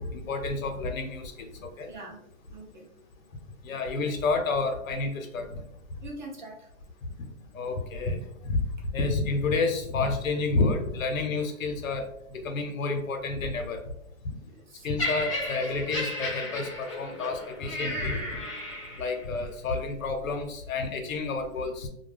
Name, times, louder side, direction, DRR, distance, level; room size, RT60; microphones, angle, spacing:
voice 1, 0.0-1.9 3.6-5.6 7.5-8.6 8.9-13.8 14.8-18.4 19.0-21.9, left 3 dB, 80° left, 5 dB, 0.8 m, -30 dB
voice 2, 1.8-2.2 2.5-2.9 6.0-6.7 14.4-14.9 17.1-17.2, right 1 dB, 35° right, 0 dB, 0.5 m, -43 dB
Laughter, 15.0-19.2 20.0-20.2, left 1 dB, 25° left, 0.5 m, -34 dB
2.3 x 2.2 x 3.2 m, 0.76 s
hypercardioid pair, 175°, 40 cm